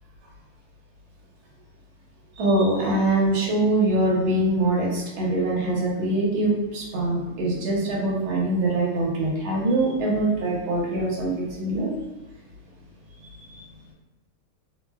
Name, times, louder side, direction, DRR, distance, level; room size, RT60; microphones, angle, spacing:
voice 1, 2.4-11.9 13.2-13.7, right 2 dB, 75° right, -4 dB, 1.6 m, -23 dB
3.5 x 2.1 x 2.2 m, 0.98 s
omnidirectional pair, 2.3 m